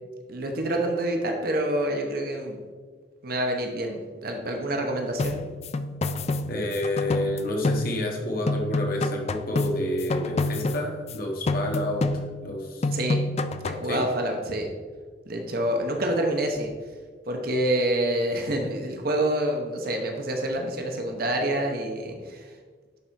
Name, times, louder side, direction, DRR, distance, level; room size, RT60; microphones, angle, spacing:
voice 1, 0.3-2.6 3.2-5.4 12.9-13.2 13.6-14.7 15.3-16.7 17.3-22.5, right 1 dB, 50° right, 2 dB, 1.0 m, -27 dB
sound 1, 5.2-8.2 8.5-11.2 11.5-12.5 12.8-13.9, left 2 dB, 35° left, 0.3 m, -28 dB
voice 2, 6.5-13.0 13.9-14.0, left 1 dB, 50° left, 1 dB, 1.5 m, -29 dB
11.0 x 4.3 x 4.5 m, 1.5 s
head